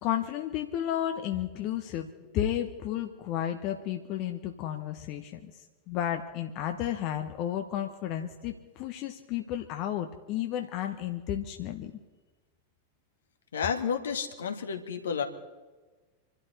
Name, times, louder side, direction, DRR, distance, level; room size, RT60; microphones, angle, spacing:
voice 1, 0.0-11.9, left 11 dB, 40° left, 5 dB, 1.2 m, -32 dB
voice 2, 13.5-15.2, left 7 dB, 65° left, 5 dB, 1.8 m, -31 dB
27.5 x 12.5 x 4.3 m, 1.3 s
figure-of-eight pair, 90°, 0 cm